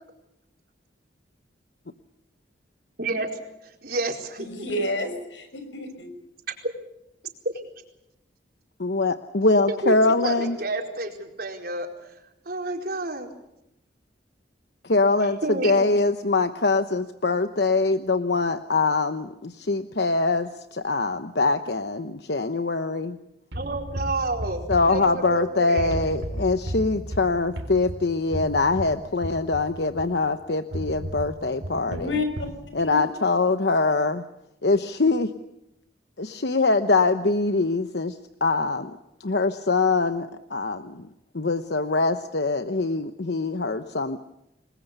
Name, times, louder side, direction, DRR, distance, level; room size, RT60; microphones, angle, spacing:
voice 1, 3.6-4.5 7.4-7.5 9.7-10.0 10.2-12.1 12.4-13.3 15.4-15.9 23.5-26.0, right 2 dB, 55° right, 2 dB, 4.5 m, -30 dB
voice 2, 4.4-6.1 31.9-32.5 32.8-33.0, left 2 dB, 90° left, 8 dB, 6.3 m, -30 dB
voice 3, 8.8-10.6 14.8-15.4 15.6-23.2 24.7-32.1 32.7-34.2 34.6-35.3 36.2-41.1 41.3-44.2, left 3 dB, 60° left, 9 dB, 1.0 m, -23 dB
sound 1, 23.5-25.4 25.8-30.2 30.7-32.7, equal, 85° right, 4.0 m, -34 dB
28.5 x 21.0 x 6.8 m, 0.87 s
head